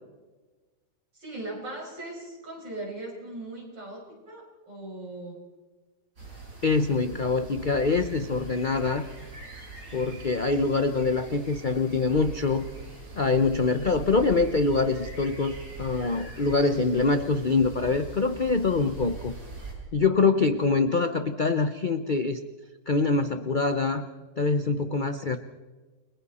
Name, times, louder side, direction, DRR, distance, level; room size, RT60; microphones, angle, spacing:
voice 1, 1.1-5.4, right 2 dB, 75° right, -3 dB, 6.7 m, -39 dB
sound 1, 6.2-19.7, right 3 dB, 60° right, 6.3 m, -42 dB
voice 2, 6.6-9.1 9.9-12.7 13.2-19.3 19.9-22.4 22.9-24.1 24.4-25.4, left 4 dB, 50° left, 9 dB, 0.5 m, -24 dB
29.5 x 22.0 x 4.2 m, 1.3 s
omnidirectional pair, 2.0 m